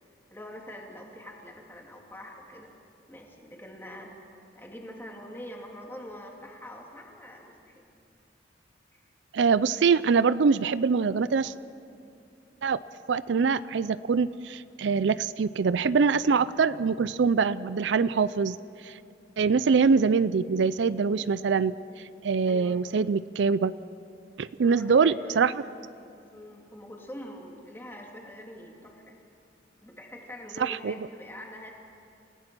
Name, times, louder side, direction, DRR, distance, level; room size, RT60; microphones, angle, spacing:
voice 1, 0.3-2.7 3.1-7.8 22.5-22.8 24.6-25.7 26.0-29.2 29.8-31.7, equal, 10° left, 0 dB, 2.6 m, -44 dB
voice 2, 9.3-11.5 12.6-12.8 13.1-18.6 18.8-19.0 19.4-21.7 22.2-23.7 24.4-25.5 30.6-30.9, right 5 dB, 75° right, 16 dB, 0.4 m, -24 dB
28.5 x 16.5 x 6.1 m, 2.6 s
head